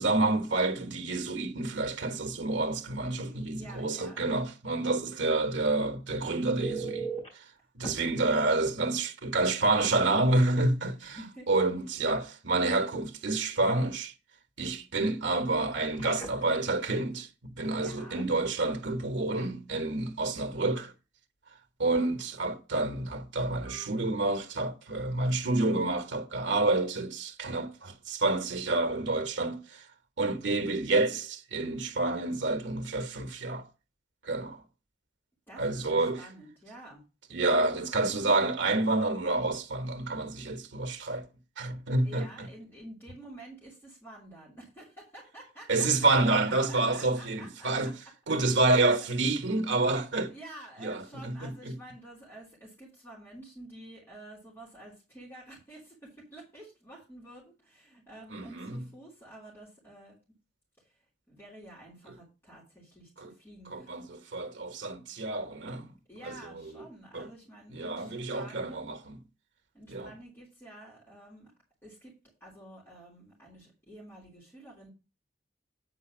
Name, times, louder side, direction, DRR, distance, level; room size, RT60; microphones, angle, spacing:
voice 1, 0.0-7.1 7.7-11.2 11.5-14.1 14.6-20.9 21.8-29.8 30.2-33.7 34.2-34.6 35.6-36.2 37.3-41.2 41.6-42.3 45.7-47.9 48.3-50.3 50.8-51.8 58.3-58.8 63.2-63.3 63.7-65.9 66.3-66.4 67.1-67.3 67.7-69.2 69.9-70.1, right 2 dB, 80° right, 1.3 m, -28 dB
voice 2, 3.0-4.2 11.0-11.5 17.7-18.3 35.5-37.0 37.3-37.4 42.0-47.9 48.5-49.1 50.3-60.2 60.8-61.0 61.3-64.0 66.1-68.9 69.7-71.5 71.8-72.1 72.4-74.9, right 1 dB, 10° left, 3.2 m, -49 dB
Telephone, 6.6-7.3 7.8-7.9 9.7-9.8 10.2-10.4 15.7-16.5 23.7-23.9, right 4 dB, 30° left, 3.3 m, -38 dB
8.6 x 4.4 x 6.0 m
head